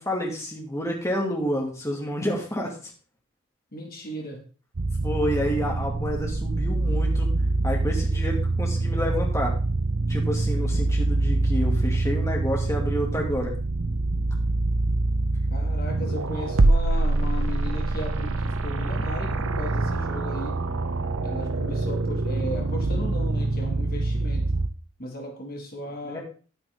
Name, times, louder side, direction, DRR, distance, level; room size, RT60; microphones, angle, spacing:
voice 1, 0.0-2.8 5.0-7.3 7.6-9.5 10.1-13.5 26.0-26.2, equal, 15° left, -1 dB, 2.2 m, -29 dB
voice 2, 3.7-4.4 15.5-20.6 21.2-24.5 25.0-26.2, left 1 dB, 40° left, 2 dB, 2.0 m, -36 dB
sound 1, 4.8-24.7, right 2 dB, 70° right, 0.9 m, -25 dB
10.5 x 9.6 x 3.6 m, 0.38 s
head